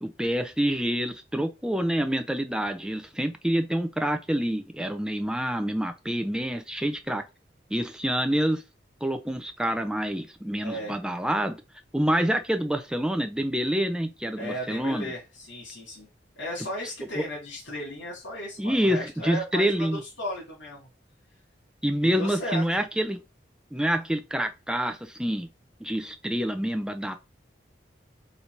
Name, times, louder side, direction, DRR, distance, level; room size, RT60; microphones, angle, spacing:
voice 1, 0.0-7.2 7.7-8.6 9.0-11.6 11.9-15.1 17.1-17.3 18.6-20.0 21.8-23.2 23.7-25.5 25.8-27.1, equal, 5° right, 0.4 m, -27 dB
voice 2, 10.6-10.9 14.4-16.1 16.4-20.9 22.0-22.6, equal, 85° left, 2.1 m, -35 dB
4.2 x 2.7 x 4.4 m
head